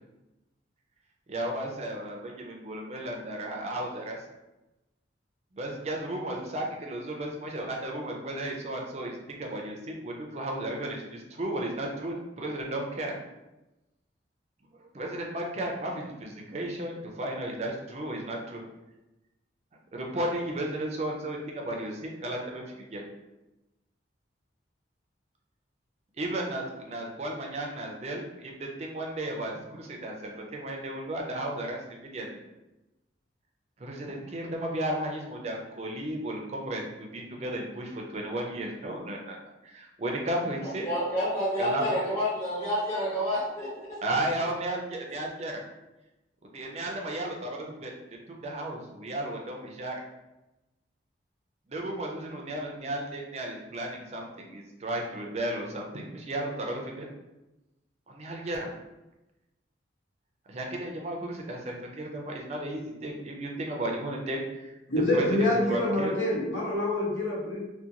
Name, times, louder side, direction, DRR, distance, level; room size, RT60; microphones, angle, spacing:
voice 1, 1.3-4.2 5.5-13.1 14.8-18.6 19.9-23.0 26.2-32.4 33.8-39.4 39.6-40.8 41.6-41.9 44.0-45.6 46.4-47.9 48.3-50.0 51.7-57.1 58.1-58.7 60.5-64.8 65.1-66.1, right 1 dB, 35° right, 0 dB, 0.4 m, -34 dB
voice 2, 40.8-43.7, equal, 15° left, -12 dB, 0.7 m, -28 dB
voice 3, 64.9-67.6, left 1 dB, 85° left, -5 dB, 0.9 m, -26 dB
2.4 x 2.2 x 2.8 m, 1.0 s
head